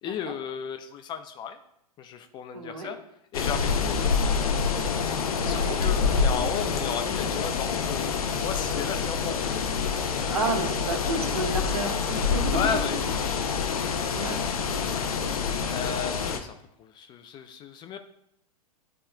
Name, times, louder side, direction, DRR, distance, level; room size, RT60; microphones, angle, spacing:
voice 1, 0.0-1.6 2.0-3.0 3.3-4.1 5.1-9.5 12.5-13.6 14.1-14.2 15.7-18.0, left 7 dB, 25° left, 8 dB, 0.4 m, -34 dB
voice 2, 2.5-2.9 3.7-3.8 5.4-5.8 10.3-12.9 14.1-14.4, right 3 dB, 70° right, 2 dB, 1.6 m, -31 dB
sound 1, 3.3-16.4, left 5 dB, 65° left, 0.7 m, -27 dB
10.5 x 4.2 x 2.3 m, 0.76 s
figure-of-eight pair, 100°, 20 cm